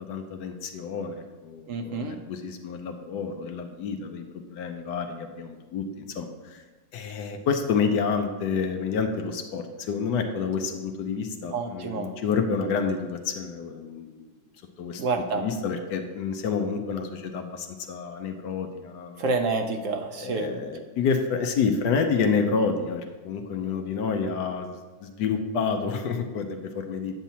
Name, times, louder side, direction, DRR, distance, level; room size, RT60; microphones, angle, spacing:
voice 1, 0.0-6.6 6.9-14.3 14.8-15.0 15.3-19.2 20.2-27.1, left 5 dB, 75° left, 5 dB, 1.2 m, -29 dB
voice 2, 1.7-2.2 11.5-12.1 15.0-15.4 19.2-20.5, right 4 dB, 70° right, 5 dB, 0.7 m, -28 dB
9.2 x 7.2 x 2.8 m, 1.3 s
omnidirectional pair, 1.9 m